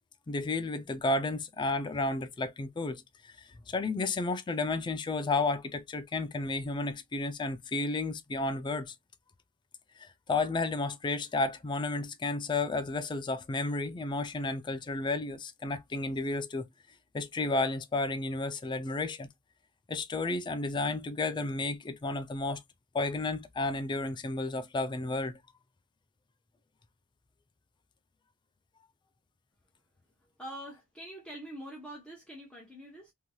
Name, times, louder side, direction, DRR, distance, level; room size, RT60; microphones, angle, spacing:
voice 1, 0.3-3.3 3.7-8.9 10.0-16.7 17.1-19.3 19.9-22.6 22.9-25.4, left 3 dB, 20° left, 0.3 m, -32 dB
voice 2, 30.4-33.1, right 1 dB, 5° left, 0.8 m, -44 dB
3.0 x 2.7 x 2.2 m
head